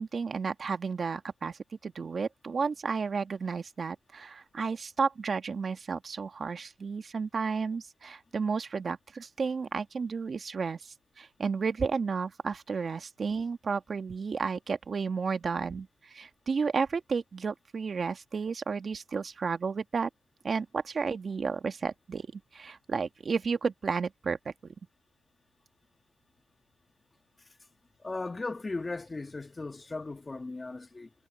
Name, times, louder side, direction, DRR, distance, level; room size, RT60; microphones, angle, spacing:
voice 1, 0.0-20.1 20.4-24.5, right 5 dB, 40° right, 1.7 m, -32 dB
voice 2, 28.0-31.1, left 3 dB, 20° left, 1.9 m, -37 dB
cardioid pair, 90°, 0 cm